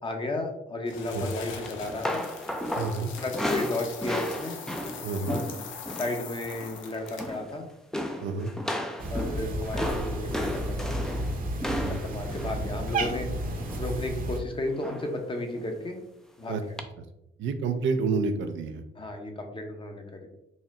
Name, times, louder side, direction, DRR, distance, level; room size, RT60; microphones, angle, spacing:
voice 1, 0.0-2.2 3.0-4.6 5.3-5.5 6.0-7.7 9.1-11.2 11.8-13.3 13.8-16.0 16.4-16.6 19.0-20.3, left 2 dB, 25° left, 3 dB, 0.7 m, -34 dB
sound 1, 0.9-7.4, left 6 dB, 75° left, 0.6 m, -42 dB
sound 2, 1.6-6.2 6.4-6.8 7.1-7.6 7.9-14.0 14.8-15.2 15.5-15.7 16.8-16.9, left 1 dB, ahead, 0.4 m, -34 dB
voice 2, 2.8-3.1 5.0-5.4 8.2-8.5 11.7-12.0 16.5-16.6 17.0-17.1 17.4-18.8, right 4 dB, 75° right, 7 dB, 0.5 m, -29 dB
Cat, 9.0-14.4, right 1 dB, 45° right, 0.8 m, -32 dB
4.1 x 2.1 x 3.6 m, 0.87 s
cardioid pair, 90°, 20 cm